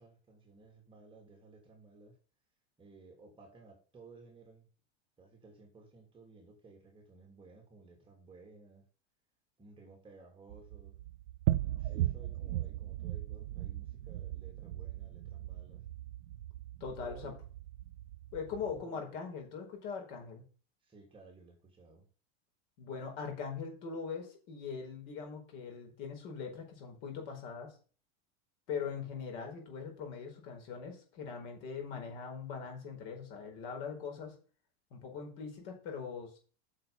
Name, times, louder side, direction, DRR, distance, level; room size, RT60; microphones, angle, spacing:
voice 1, 0.0-2.2 2.8-4.7 5.2-8.9 9.6-11.0 11.6-15.8 17.0-17.4 18.6-19.2 20.8-22.1, right 3 dB, 15° right, 2 dB, 2.8 m, -56 dB
sound 1, 10.5-18.8, right 14 dB, 75° right, 0.9 m, -38 dB
voice 2, 16.8-17.3 18.3-20.4 22.8-27.7 28.7-34.3 34.9-36.4, left 6 dB, 55° left, 3 dB, 4.9 m, -41 dB
9.4 x 6.6 x 5.5 m, 0.38 s
supercardioid pair, 150°, 34 cm